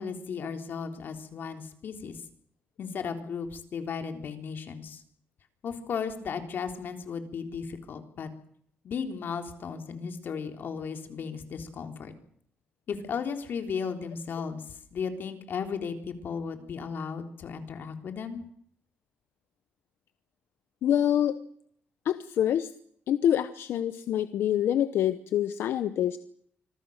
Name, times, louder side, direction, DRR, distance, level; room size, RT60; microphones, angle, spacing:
voice 1, 0.0-2.2 2.8-5.0 5.6-8.3 8.8-12.1 12.9-18.4, left 6 dB, 60° left, 5 dB, 3.5 m, -35 dB
voice 2, 20.8-21.4 22.0-22.7 23.1-26.2, left 10 dB, 85° left, 12 dB, 0.9 m, -26 dB
26.0 x 21.0 x 6.6 m, 0.66 s
cardioid pair, 130°, 4 cm